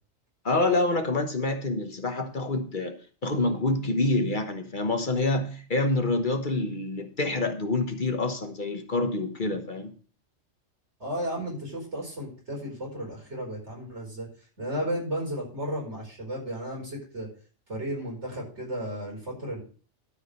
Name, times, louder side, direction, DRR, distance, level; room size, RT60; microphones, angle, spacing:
voice 1, 0.4-3.0 3.2-9.9, left 2 dB, 45° left, 1.3 m, -27 dB
voice 2, 11.0-14.3 14.6-17.3 17.7-19.6, equal, 75° right, 5.1 m, -34 dB
12.5 x 5.0 x 6.6 m
omnidirectional pair, 1.2 m